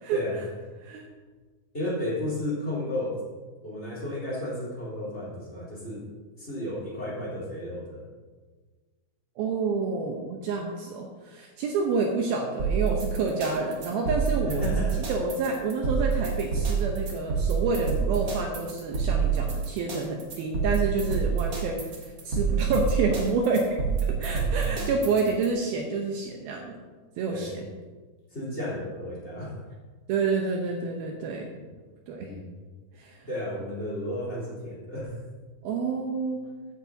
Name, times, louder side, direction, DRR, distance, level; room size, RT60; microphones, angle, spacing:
voice 1, 0.1-0.4 1.7-3.2 3.6-6.0 6.4-8.0 14.5-15.0 24.3-25.0 27.3-27.6 28.3-29.6 31.6-31.7 32.2-32.5 33.3-35.2, left 1 dB, 15° left, -6 dB, 2.9 m, -33 dB
voice 2, 9.4-14.7 15.0-23.8 24.2-26.8 27.2-27.5 30.1-31.5 32.1-32.3 33.0-33.2 35.6-36.5, right 4 dB, 80° right, 1 dB, 2.2 m, -28 dB
sound 1, 12.6-25.5, right 6 dB, 55° right, 1.4 m, -27 dB
15.0 x 9.2 x 2.7 m, 1.4 s
omnidirectional pair, 5.4 m